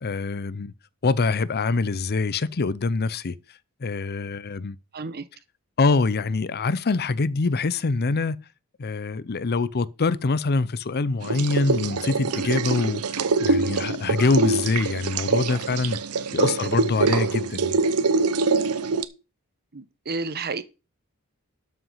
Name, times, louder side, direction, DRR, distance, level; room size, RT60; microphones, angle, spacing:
voice 1, 0.0-0.7 1.0-3.4 3.8-4.8 5.8-8.4 8.8-16.0 16.3-17.8, left 3 dB, 45° left, 0.6 m, -24 dB
voice 2, 4.9-5.3 16.4-16.5 17.0-17.1 19.7-20.6, right 3 dB, 45° right, 1.1 m, -32 dB
sound 1, 11.2-19.0, right 4 dB, 80° right, 0.8 m, -24 dB
12.5 x 5.8 x 5.6 m
head